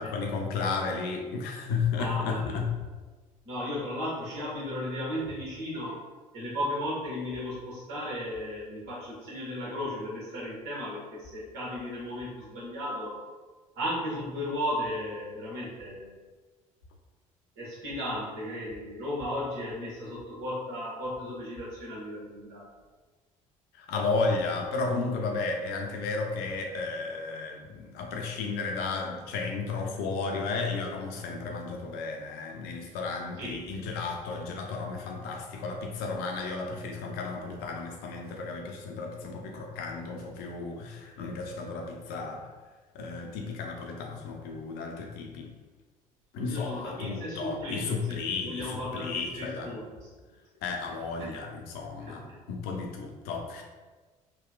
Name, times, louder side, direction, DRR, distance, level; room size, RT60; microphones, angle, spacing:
voice 1, 0.0-2.7 23.7-42.5 42.9-45.5 46.3-49.7 50.6-52.2 52.5-53.6, left 4 dB, 65° left, 2 dB, 0.6 m, -33 dB
voice 2, 1.9-2.6 3.4-6.0 6.3-13.2 13.7-16.1 17.6-22.7 33.4-33.6 46.5-50.1 51.2-51.3 52.0-52.4, left 1 dB, 70° right, -5 dB, 1.3 m, -35 dB
3.8 x 2.2 x 2.3 m, 1.3 s
hypercardioid pair, 55°, 18 cm